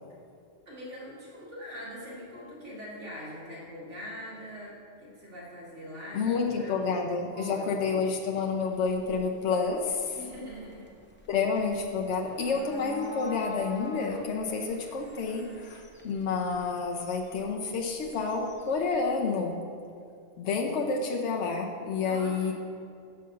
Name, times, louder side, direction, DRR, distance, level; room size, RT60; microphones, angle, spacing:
voice 1, 0.7-6.3 6.6-7.0 7.3-7.7 10.1-10.9 22.0-22.5, equal, 90° right, -6 dB, 2.3 m, -43 dB
voice 2, 6.1-10.2 11.3-19.6 20.4-22.5, left 4 dB, 75° left, 0 dB, 1.0 m, -29 dB
sound 1, 8.7-19.2, left 1 dB, 15° left, 0.5 m, -47 dB
6.4 x 5.5 x 6.7 m, 2.4 s
omnidirectional pair, 1.2 m